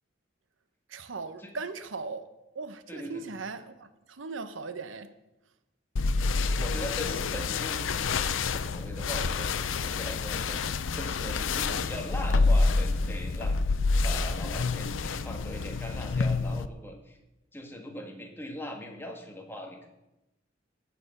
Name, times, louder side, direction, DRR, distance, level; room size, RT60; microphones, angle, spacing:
voice 1, 0.9-2.2 2.5-5.1, right 4 dB, 85° right, 12 dB, 0.9 m, -38 dB
voice 2, 2.9-3.2 6.4-13.6 14.0-17.2 17.5-19.9, left 1 dB, 10° left, 2 dB, 1.9 m, -40 dB
sound 1, 6.0-16.7, left 3 dB, 90° left, 0.6 m, -28 dB
16.5 x 6.9 x 6.7 m, 0.96 s
head